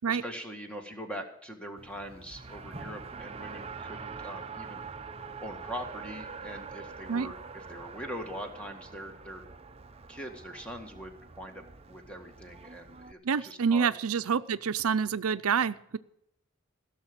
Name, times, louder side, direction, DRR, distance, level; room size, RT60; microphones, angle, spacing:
voice 1, 0.0-4.9 5.4-9.4 10.1-13.9, equal, 5° left, 4 dB, 1.8 m, -42 dB
Race car auto racing, 1.8-13.1, right 5 dB, 25° right, 0.6 m, -44 dB
voice 2, 13.2-16.0, right 6 dB, 80° right, 14 dB, 0.5 m, -27 dB
16.5 x 6.6 x 8.9 m, 0.77 s
head